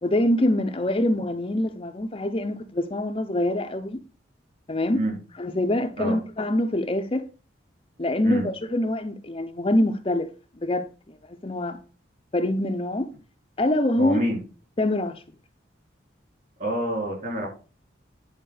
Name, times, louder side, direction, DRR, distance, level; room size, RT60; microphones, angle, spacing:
voice 1, 0.0-4.0 4.7-5.0 5.3-7.2 8.0-10.3 10.6-11.8 12.3-13.1 13.6-14.2 14.8-15.2, left 1 dB, 30° left, 0.6 m, -25 dB
voice 2, 14.0-14.4 16.6-17.5, equal, 45° right, 4.3 m, -27 dB
10.0 x 4.3 x 6.5 m
head